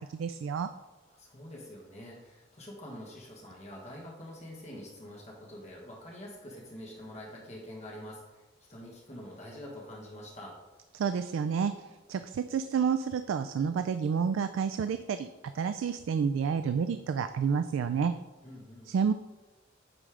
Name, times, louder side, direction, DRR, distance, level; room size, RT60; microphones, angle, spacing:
voice 1, 0.1-0.7 10.9-15.3 15.5-18.1 18.9-19.1, right 6 dB, 90° right, 9 dB, 0.3 m, -29 dB
voice 2, 1.1-10.6 18.4-18.9, left 1 dB, 35° left, -3 dB, 1.4 m, -46 dB
8.9 x 3.3 x 4.9 m, 1.1 s
head